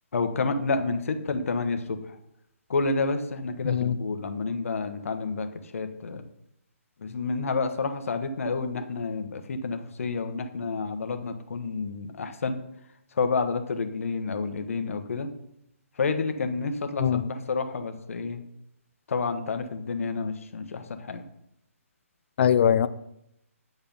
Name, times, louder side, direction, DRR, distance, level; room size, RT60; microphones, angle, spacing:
voice 1, 0.1-2.2 2.7-6.2 7.0-12.6 13.1-15.3 16.0-18.4 19.1-21.2, left 4 dB, 65° left, 1.2 m, -29 dB
voice 2, 3.6-4.0 17.0-17.2 22.4-22.9, left 9 dB, 50° left, 0.6 m, -21 dB
9.3 x 7.0 x 5.5 m
hypercardioid pair, 150°, 8 cm